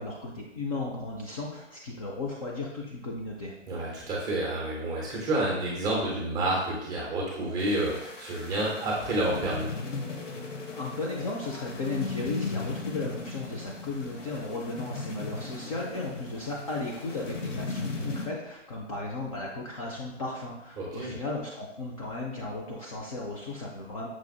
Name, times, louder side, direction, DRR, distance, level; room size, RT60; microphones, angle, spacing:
voice 1, 0.0-3.5 10.7-24.1, left 2 dB, 30° left, -3 dB, 0.4 m, -35 dB
voice 2, 3.7-9.8 20.8-21.2, right 1 dB, 10° right, -4 dB, 0.6 m, -29 dB
sound 1, 7.6-18.3, left 3 dB, 80° left, 0.9 m, -37 dB
5.9 x 2.4 x 2.3 m, 0.84 s
hypercardioid pair, 140°, 36 cm